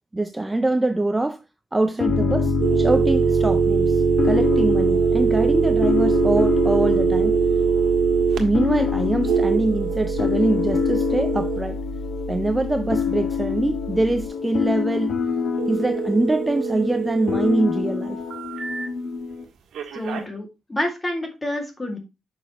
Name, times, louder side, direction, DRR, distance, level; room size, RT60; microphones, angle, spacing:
voice 1, 0.1-1.4 1.7-7.3 8.4-11.8 12.3-15.2 15.7-18.2, right 2 dB, 10° right, 0.4 m, -24 dB
sound 1, 2.0-19.4, left 7 dB, 80° left, 1.6 m, -27 dB
Piano, 2.1-14.3, right 1 dB, 40° right, 4.3 m, -29 dB
sound 2, 2.6-8.4 9.2-11.6 15.6-17.6 18.0-18.9 19.7-20.2, right 6 dB, 85° right, 1.6 m, -23 dB
voice 2, 19.9-22.0, left 1 dB, 15° left, 2.0 m, -28 dB
9.2 x 6.4 x 2.9 m
wide cardioid pair, 165°, 0 cm